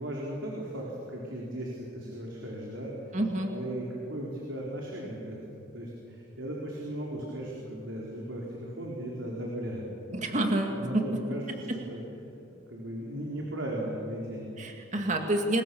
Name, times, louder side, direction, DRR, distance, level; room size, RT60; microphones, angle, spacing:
voice 1, 0.0-3.2 3.4-9.9 10.7-12.0 12.5-14.6, right 1 dB, 75° right, -3 dB, 4.1 m, -37 dB
voice 2, 3.1-3.5 10.1-11.0 11.5-11.8 14.6-15.6, right 1 dB, 40° right, 3 dB, 2.1 m, -28 dB
28.5 x 22.0 x 7.1 m, 2.9 s
head